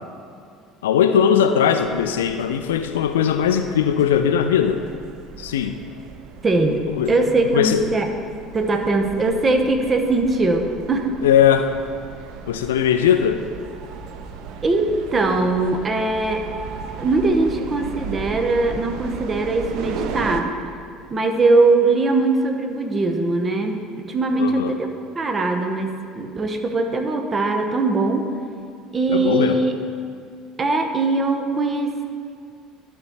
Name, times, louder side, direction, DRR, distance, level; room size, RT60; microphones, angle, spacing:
voice 1, 0.8-4.8 5.4-5.8 6.9-7.1 7.5-7.8 11.2-11.7 12.5-13.4 24.4-24.7 29.1-29.6, left 8 dB, 70° left, 8 dB, 0.3 m, -19 dB
sound 1, 1.8-20.4, right 5 dB, 55° right, 0.5 m, -36 dB
voice 2, 6.4-8.1 8.5-11.1 14.6-16.4 17.0-20.5 21.1-23.8 24.0-24.9 25.1-28.3 28.9-29.7 30.6-32.0, right 3 dB, 30° right, 5 dB, 0.9 m, -21 dB
12.0 x 4.6 x 4.2 m, 2.3 s
figure-of-eight pair, 60°, 0 cm